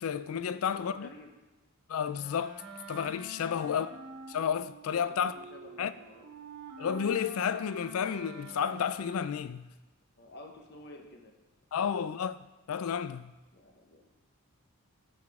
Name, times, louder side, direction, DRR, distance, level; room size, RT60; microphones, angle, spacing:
voice 1, 0.0-1.1 1.9-2.6 2.9-3.9 4.3-5.3 5.8-5.9 6.8-9.6 11.7-12.4 12.7-13.3, left 7 dB, 70° left, 0.4 m, -31 dB
voice 2, 0.7-1.3 5.0-6.3 10.2-11.3 13.5-14.1, left 1 dB, 50° left, 1.1 m, -51 dB
Wind instrument woodwind instrument, 2.1-9.5, right 1 dB, 85° right, 1.8 m, -48 dB
12.0 x 5.9 x 3.6 m
head